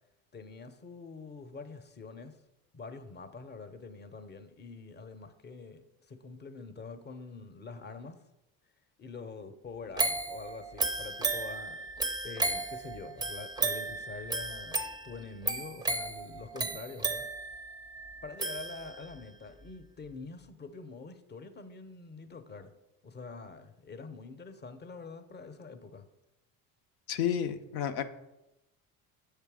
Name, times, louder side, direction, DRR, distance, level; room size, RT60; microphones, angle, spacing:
voice 1, 0.3-2.4 2.7-8.2 9.0-11.9 12.2-17.3 18.2-22.7 23.0-26.1, left 4 dB, 25° left, 0.7 m, -45 dB
sound 1, 10.0-19.2 19.7-19.8, right 3 dB, 10° right, 0.4 m, -34 dB
voice 2, 27.1-28.0, left 9 dB, 85° left, 0.6 m, -31 dB
6.7 x 3.3 x 4.7 m
hypercardioid pair, 70°, 42 cm